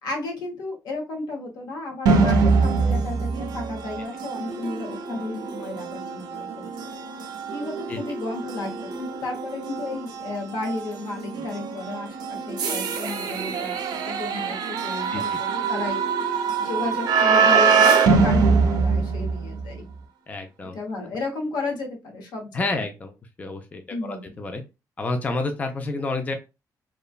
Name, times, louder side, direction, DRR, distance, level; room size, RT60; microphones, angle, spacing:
voice 1, 0.0-6.7 7.5-16.0 16.6-19.8 20.7-22.8 23.9-24.3, left 3 dB, 90° left, 1 dB, 1.0 m, -33 dB
sound 1, 2.1-19.8, right 5 dB, 80° right, 0.5 m, -24 dB
voice 2, 20.3-20.8 22.5-23.1 23.4-24.6 25.0-26.3, left 3 dB, 20° left, 5 dB, 0.4 m, -29 dB
3.0 x 2.2 x 2.4 m, 0.27 s
cardioid pair, 135°, 7 cm